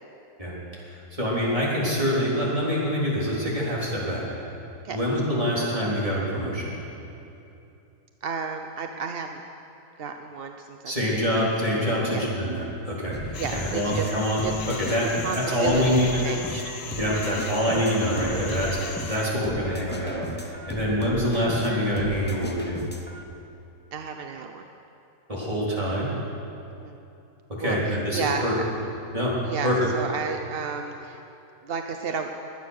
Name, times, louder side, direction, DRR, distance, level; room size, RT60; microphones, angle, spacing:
voice 1, 0.8-4.6 4.9-6.7 10.9-14.4 14.8-15.1 15.3-16.2 17.0-22.8 25.3-26.1 27.6-28.5 29.1-29.4 29.6-29.9, equal, 20° right, -6 dB, 3.7 m, -25 dB
voice 2, 8.2-9.4 10.0-11.3 12.1-12.3 13.4-14.1 14.4-14.5 15.2-17.1 23.9-24.7 26.7-26.9 27.6-28.4 29.5-31.2 31.6-32.3, right 6 dB, 55° right, 5 dB, 0.6 m, -32 dB
sound 1, 13.1-23.2, left 2 dB, 10° left, 0.5 m, -37 dB
sound 2, 13.3-19.3, left 5 dB, 75° left, 1.7 m, -38 dB
21.5 x 9.5 x 6.5 m, 2.8 s
omnidirectional pair, 1.7 m